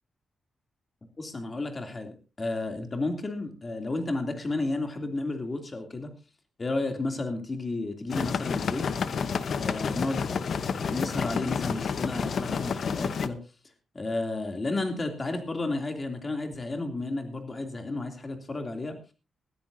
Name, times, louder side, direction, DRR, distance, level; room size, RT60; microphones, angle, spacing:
voice 1, 1.2-6.1 6.6-8.8 9.5-10.3 10.6-13.4 13.9-19.0, left 2 dB, 30° left, 5 dB, 3.0 m, -32 dB
sound 1, 8.1-13.3, left 6 dB, 60° left, 0.9 m, -30 dB
20.5 x 13.5 x 2.8 m, 0.32 s
cardioid pair, 110°, 0 cm